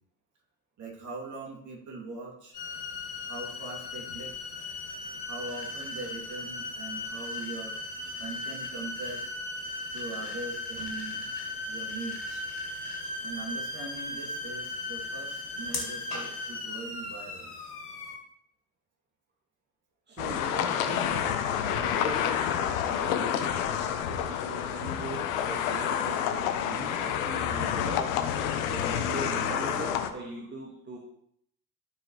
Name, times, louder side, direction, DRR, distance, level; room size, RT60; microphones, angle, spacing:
voice 1, 0.8-2.6 3.3-4.3 5.3-7.7 8.2-9.3 9.9-11.2 11.6-12.4 13.2-17.5, right 3 dB, 40° right, -1 dB, 2.8 m, -41 dB
sound 1, 2.5-18.2, left 2 dB, 75° left, 2.2 m, -37 dB
voice 2, 20.1-28.2 28.6-31.0, right 3 dB, 25° right, -1 dB, 1.6 m, -40 dB
sound 2, 20.2-30.1, left 9 dB, 60° left, 1.0 m, -29 dB
13.0 x 5.9 x 3.2 m, 0.72 s
figure-of-eight pair, 65°, 47 cm